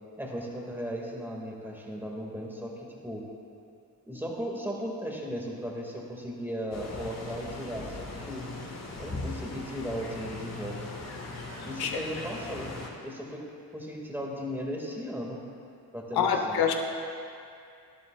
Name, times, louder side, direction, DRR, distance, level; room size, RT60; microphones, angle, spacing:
voice 1, 0.2-3.2 4.1-8.4 9.0-10.9 11.6-12.7 13.0-13.4 13.7-15.4 15.9-16.6, equal, 5° right, -2 dB, 1.8 m, -36 dB
sound 1, 6.7-12.9, left 2 dB, 45° left, 1.7 m, -39 dB
voice 2, 16.1-16.8, left 7 dB, 80° left, 3 dB, 1.0 m, -26 dB
12.0 x 11.5 x 2.3 m, 2.4 s
cardioid pair, 80°, 37 cm